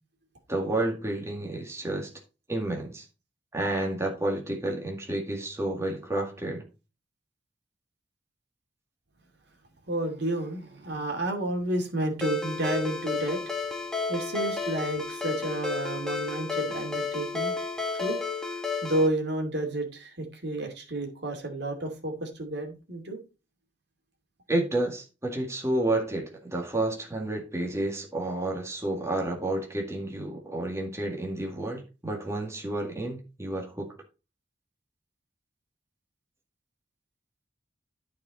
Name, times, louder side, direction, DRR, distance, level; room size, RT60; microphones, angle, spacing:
voice 1, 0.5-2.1 2.5-3.1 3.5-6.6 24.5-33.9, right 1 dB, 15° right, 1.9 m, -30 dB
voice 2, 9.9-13.4 14.1-17.5 17.9-18.2 18.5-23.2, right 1 dB, 60° right, 2.5 m, -31 dB
Ringtone, 12.2-19.1, left 4 dB, 5° left, 1.5 m, -32 dB
12.5 x 4.8 x 4.1 m
head